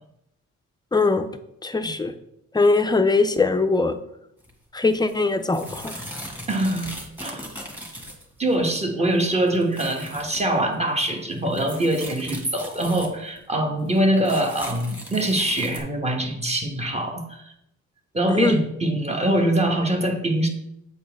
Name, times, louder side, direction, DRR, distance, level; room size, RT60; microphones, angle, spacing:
voice 1, 0.9-1.3 1.6-2.1 2.5-4.0 4.7-5.9 18.3-18.6, left 3 dB, 15° left, 8 dB, 0.5 m, -21 dB
sound 1, 4.4-4.5 4.9-8.7 9.1-10.4 10.7-10.8 11.1-13.4 13.9-15.8, equal, 5° right, 1.7 m, -39 dB
voice 2, 6.5-7.4 8.4-17.5 18.1-20.5, right 1 dB, 20° right, 3 dB, 1.2 m, -23 dB
8.3 x 4.2 x 3.5 m, 0.80 s
cardioid pair, 90°, 30 cm